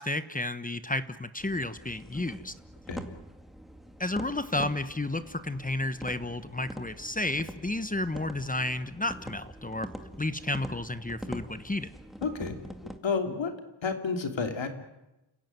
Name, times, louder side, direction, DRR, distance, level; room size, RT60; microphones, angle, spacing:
voice 1, 0.0-2.5 4.0-9.9 10.2-11.9, left 2 dB, 20° left, 12 dB, 1.0 m, -32 dB
sound 1, 1.4-13.0, equal, ahead, 2.1 m, -44 dB
voice 2, 12.2-12.6 13.0-13.5 13.8-14.7, left 5 dB, 80° left, 5 dB, 3.1 m, -30 dB
29.0 x 16.0 x 9.4 m, 0.96 s
wide cardioid pair, 95°, 44 cm